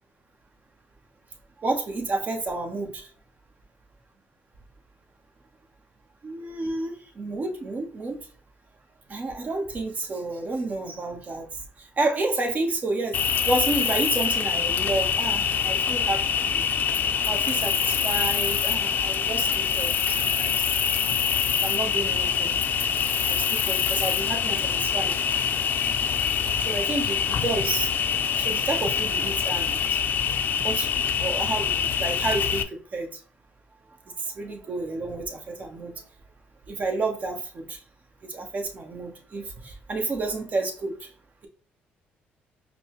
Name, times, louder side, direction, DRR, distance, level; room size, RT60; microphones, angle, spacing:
voice 1, 1.6-3.1 6.2-8.3 9.1-16.7 17.3-20.8 21.0-21.1 21.6-22.6 23.2-25.1 26.6-27.9 28.3-30.0 30.6-33.2 34.2-36.0 36.7-37.8 38.2-41.1, right 3 dB, 40° right, 3 dB, 1.1 m, -30 dB
Cricket, 13.1-32.6, left 7 dB, 50° left, 0.4 m, -25 dB
5.2 x 2.1 x 3.0 m, 0.40 s
cardioid pair, 100°, 4 cm